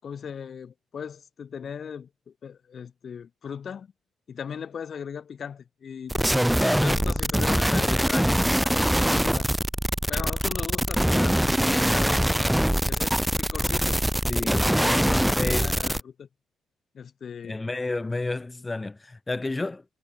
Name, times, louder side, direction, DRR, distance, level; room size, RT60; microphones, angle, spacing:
voice 1, 0.0-3.9 4.3-6.2 6.5-9.5 10.1-12.6 12.9-16.3 16.9-17.6, left 7 dB, 50° left, 7.3 m, -38 dB
sound 1, 6.1-16.0, equal, 5° right, 0.7 m, -23 dB
voice 2, 14.3-15.8 17.4-19.8, left 2 dB, 20° left, 2.6 m, -31 dB
cardioid pair, 90°, 0 cm